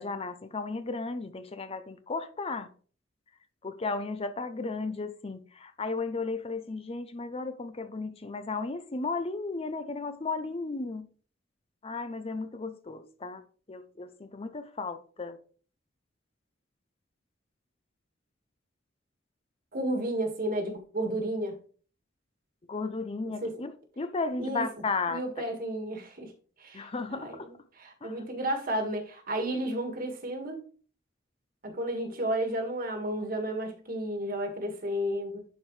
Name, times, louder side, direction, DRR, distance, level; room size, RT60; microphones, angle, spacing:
voice 1, 0.0-2.7 3.6-11.1 11.8-15.4 22.7-25.2 26.7-27.5 28.0-28.2, left 3 dB, 30° left, 0.6 m, -34 dB
voice 2, 19.7-21.6 23.2-23.6 24.4-24.7 25.1-26.3 26.6-30.6 31.6-35.4, right 1 dB, 50° right, 1.8 m, -32 dB
11.0 x 4.7 x 3.2 m
head